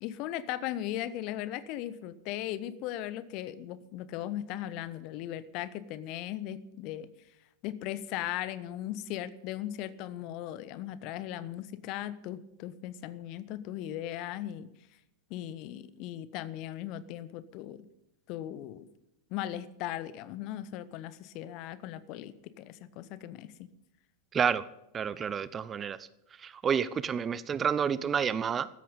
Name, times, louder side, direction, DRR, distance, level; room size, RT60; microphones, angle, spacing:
voice 1, 0.0-7.1 7.6-14.7 15.3-17.8 18.3-18.9 19.3-23.7, left 12 dB, 40° left, 16 dB, 1.0 m, -38 dB
voice 2, 24.3-24.6 24.9-26.0 26.4-28.7, right 7 dB, 20° right, 17 dB, 0.6 m, -29 dB
15.5 x 13.5 x 5.4 m, 0.85 s
figure-of-eight pair, 90°, 0 cm